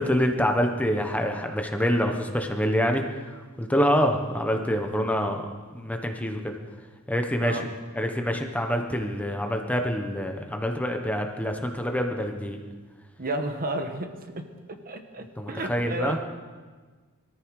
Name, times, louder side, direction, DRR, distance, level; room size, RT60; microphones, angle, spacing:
voice 1, 0.0-6.6 7.1-7.6 7.9-12.6 15.4-16.2, equal, 5° left, 4 dB, 1.1 m, -26 dB
voice 2, 13.2-16.2, right 2 dB, 45° right, 6 dB, 1.3 m, -32 dB
21.5 x 14.0 x 4.8 m, 1.4 s
head